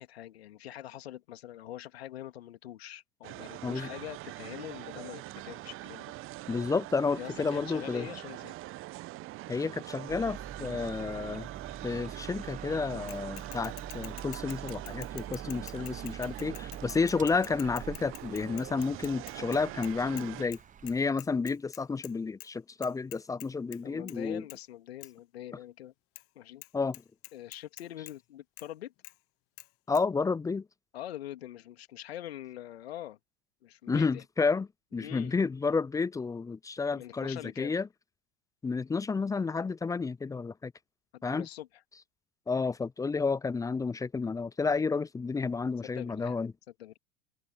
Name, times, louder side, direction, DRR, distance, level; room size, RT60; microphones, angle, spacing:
voice 1, 0.0-6.1 7.2-8.5 23.8-25.9 26.3-26.6 27.3-28.9 30.9-33.2 33.6-34.2 34.9-35.4 36.9-37.8 41.1-41.7 45.8-46.4 46.8-47.0, left 13 dB, 70° left, 2.7 m, -44 dB
sound 1, 3.2-20.5, right 18 dB, 40° right, 1.2 m, -43 dB
voice 2, 6.5-8.1 9.5-11.5 11.8-24.5 25.5-25.6 26.7-27.0 28.0-28.1 29.9-30.7 33.9-37.9 38.6-40.7 41.2-41.5 41.9-42.0 42.5-46.5, left 4 dB, 10° left, 0.6 m, -31 dB
sound 2, 10.1-21.0, right 8 dB, 25° right, 1.2 m, -45 dB
Bicycle / Mechanisms, 13.1-20.3 20.5-20.6 20.9-22.1 22.4-22.5 22.8-23.8 24.1-24.2 24.5-24.6 25.0-25.1 26.2-26.3 26.6-26.7 26.9-28.1 28.6-28.7 29.0-29.1 29.6-29.7 29.9-30.0, left 21 dB, 45° left, 1.4 m, -47 dB
figure-of-eight pair, 85°, 32 cm